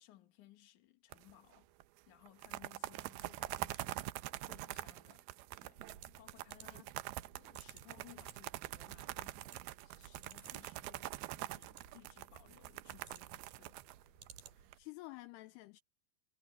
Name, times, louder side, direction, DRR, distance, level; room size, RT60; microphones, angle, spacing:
voice 1, 0.0-1.7 2.1-5.3 5.6-7.0 7.3-13.8, left 14 dB, 55° left, 2.4 m, -62 dB
sound 1, 1.1-1.6 1.8-1.9 2.3-14.7, right 17 dB, 85° right, 2.2 m, -45 dB
sound 2, 5.7-14.9, right 8 dB, 55° right, 4.2 m, -60 dB
voice 2, 14.5-15.8, left 20 dB, 85° left, 2.4 m, -51 dB
omnidirectional pair, 5.2 m